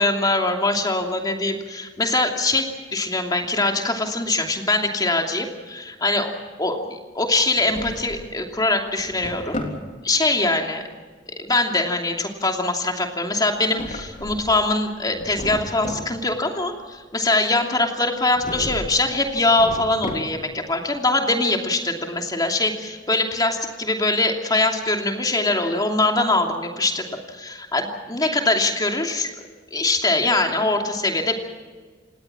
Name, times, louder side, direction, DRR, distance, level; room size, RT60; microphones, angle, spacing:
voice 1, 0.0-2.7 2.9-9.6 10.0-10.8 11.4-29.3 29.7-31.3, left 2 dB, 20° left, 3 dB, 2.8 m, -22 dB
Drawer open or close, 7.4-8.4 8.8-9.8 13.5-14.6 15.0-16.1 18.3-19.0 19.3-20.6, left 1 dB, 40° left, 3.5 m, -34 dB
28.0 x 19.0 x 6.1 m, 1.4 s
head